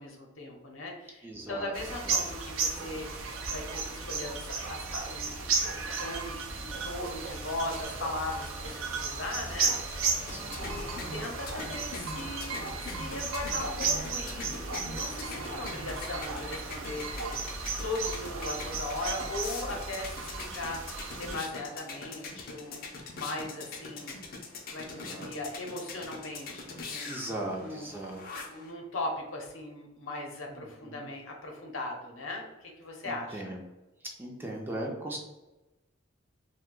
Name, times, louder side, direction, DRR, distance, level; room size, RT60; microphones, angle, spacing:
voice 1, 0.0-14.5 14.7-17.3 17.8-24.2 24.7-27.9 28.3-33.6, left 2 dB, 80° left, 1 dB, 0.7 m, -39 dB
voice 2, 1.2-1.7 2.0-2.2 10.3-10.7 25.0-25.3 27.1-28.2 30.5-31.1 33.1-33.6 34.2-35.2, right 1 dB, 10° right, -1 dB, 0.4 m, -38 dB
sound 1, 1.3-18.8, equal, 40° right, 0.8 m, -48 dB
sound 2, 1.7-21.4, right 4 dB, 85° right, 0.5 m, -34 dB
sound 3, 9.5-28.7, left 3 dB, 45° left, 0.5 m, -43 dB
2.7 x 2.2 x 3.6 m, 1.0 s
head